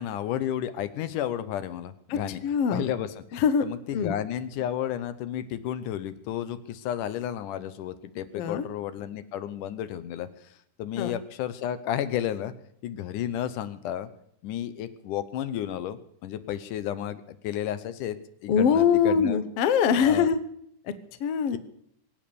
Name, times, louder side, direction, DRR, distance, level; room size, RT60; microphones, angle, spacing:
voice 1, 0.0-2.4 2.7-3.2 3.6-10.3 10.8-12.5 12.8-14.1 14.4-18.2 18.4-19.4 20.0-20.3 21.5-21.6, left 11 dB, 80° left, 13 dB, 2.4 m, -32 dB
voice 2, 2.1-2.8 3.3-3.7 3.9-4.1 8.4-8.7 11.0-11.1 18.5-20.4 21.2-21.6, left 7 dB, 60° left, 13 dB, 1.7 m, -23 dB
23.5 x 8.8 x 6.9 m, 0.70 s
omnidirectional pair, 3.7 m